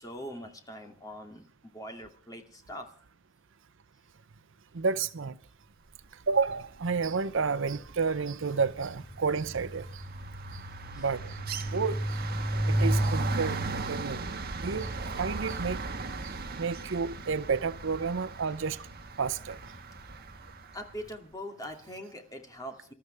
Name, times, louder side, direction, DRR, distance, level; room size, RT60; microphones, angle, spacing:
voice 1, 0.0-2.9 10.9-11.0 20.7-22.9, equal, 20° left, 2.7 m, -42 dB
voice 2, 4.7-5.4 6.3-10.0 10.5-10.6 11.0-11.4 11.7-12.2 12.7-14.3 14.6-14.9 15.2-15.8 16.2-18.9 19.2-19.6, right 5 dB, 65° right, 0.7 m, -31 dB
sound 1, 6.8-7.2 7.5-20.6, right 2 dB, 50° right, 1.6 m, -34 dB
27.0 x 13.0 x 3.4 m
head